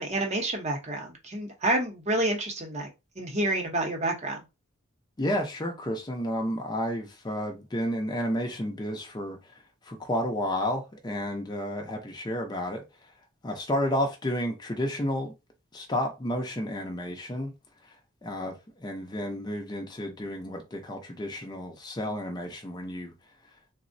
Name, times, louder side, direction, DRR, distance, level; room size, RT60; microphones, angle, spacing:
voice 1, 0.0-2.9 3.2-4.4, right 1 dB, 35° right, 0.7 m, -29 dB
voice 2, 5.2-9.5 9.8-13.1 13.4-15.3 15.7-17.5 18.2-23.1, equal, 20° left, 0.5 m, -31 dB
3.5 x 2.0 x 2.5 m
head